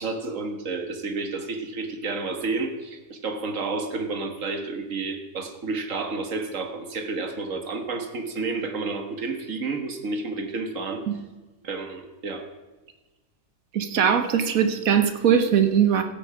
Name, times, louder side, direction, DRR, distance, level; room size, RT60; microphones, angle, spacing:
voice 1, 0.0-11.0 11.6-12.5, right 3 dB, 65° right, 7 dB, 1.7 m, -30 dB
voice 2, 13.7-16.0, right 8 dB, 85° right, 9 dB, 1.5 m, -20 dB
15.0 x 8.6 x 5.8 m, 1.2 s
omnidirectional pair, 1.4 m